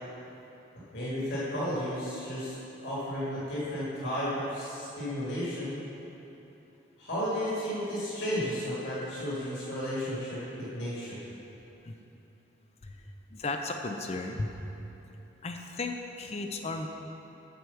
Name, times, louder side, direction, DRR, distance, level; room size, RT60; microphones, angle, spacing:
voice 1, 0.9-2.6 2.8-5.8 7.0-11.2, equal, 60° left, -9 dB, 2.0 m, -33 dB
voice 2, 13.3-14.5 15.4-16.9, left 3 dB, 35° left, 4 dB, 0.5 m, -35 dB
7.8 x 4.8 x 7.0 m, 3.0 s
head